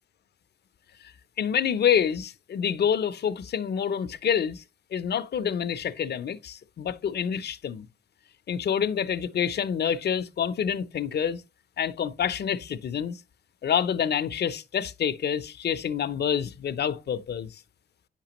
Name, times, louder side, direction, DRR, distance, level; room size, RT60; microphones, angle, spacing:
voice 1, 1.4-4.6 4.9-7.9 8.5-11.4 11.8-13.2 13.6-17.6, left 8 dB, 65° left, 0.6 m, -27 dB
8.3 x 5.9 x 2.9 m
cardioid pair, 70°, 19 cm